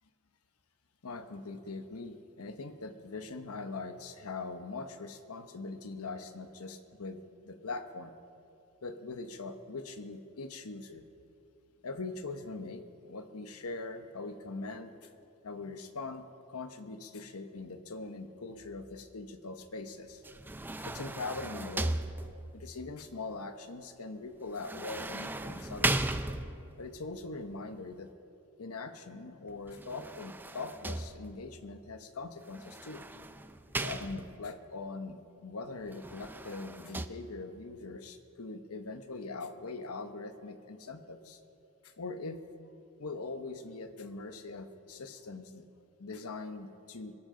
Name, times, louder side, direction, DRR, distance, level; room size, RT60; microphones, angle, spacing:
voice 1, 1.0-8.1 8.8-11.0 11.8-15.1 15.4-20.4 20.7-22.2 22.5-26.2 26.8-28.1 28.6-33.0 33.8-41.4 41.8-42.4 43.0-45.7 46.0-47.1, left 3 dB, 85° left, 8 dB, 1.0 m, -42 dB
sound 1, 20.2-22.7 24.5-26.8 29.7-31.5 32.5-34.5 35.9-37.1, right 2 dB, 10° right, 0.4 m, -37 dB
23.0 x 13.0 x 3.8 m, 2.7 s
head